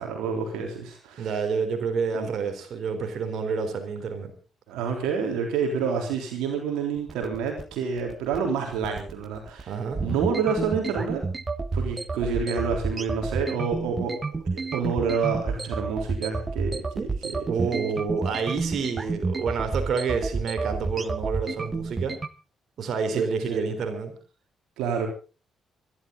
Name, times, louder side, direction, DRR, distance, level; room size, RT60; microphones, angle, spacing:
voice 1, 0.0-1.4 2.1-2.3 4.7-9.7 10.0-11.2 11.7-17.5 23.1-23.7 24.8-25.1, right 6 dB, 80° right, 2 dB, 3.6 m, -28 dB
voice 2, 1.2-4.3 9.7-10.0 17.5-22.2 22.8-24.1, right 5 dB, 65° right, 6 dB, 3.8 m, -28 dB
sound 1, 7.0-22.3, right 4 dB, 35° right, 1.4 m, -30 dB
25.0 x 12.0 x 3.9 m, 0.35 s
supercardioid pair, 55°, 0 cm